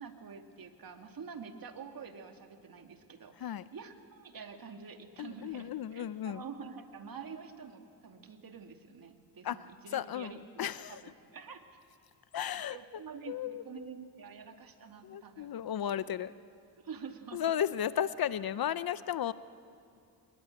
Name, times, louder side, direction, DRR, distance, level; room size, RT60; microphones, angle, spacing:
voice 1, 0.0-10.4 10.9-11.6 12.4-15.5 15.8-15.9 16.8-17.5, right 6 dB, 50° right, 5 dB, 2.5 m, -47 dB
voice 2, 5.2-6.4 9.4-9.6 9.9-10.3 10.6-11.0 12.3-12.8 13.3-13.9 15.0-16.3 17.3-19.3, left 10 dB, 55° left, 15 dB, 0.8 m, -34 dB
27.0 x 21.0 x 8.9 m, 2.5 s
cardioid pair, 80°, 44 cm